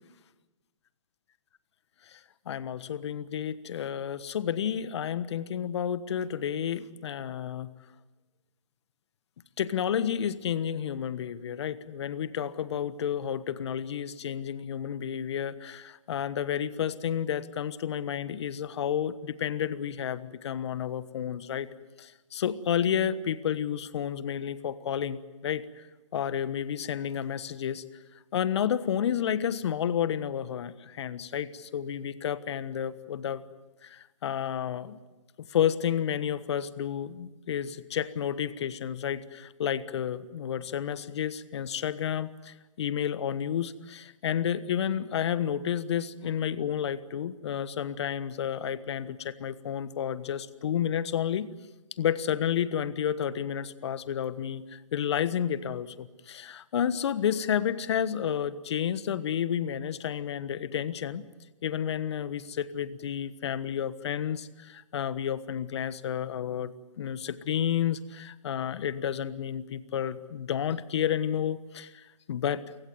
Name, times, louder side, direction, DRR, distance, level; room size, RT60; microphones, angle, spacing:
voice 1, 2.5-7.7 9.6-21.7 22.0-25.8 26.1-27.8 28.3-33.4 33.8-35.0 35.4-51.5 52.0-61.3 61.6-72.6, left 9 dB, 55° left, 14 dB, 1.3 m, -31 dB
29.0 x 16.0 x 9.4 m, 1.2 s
hypercardioid pair, 130°, 17 cm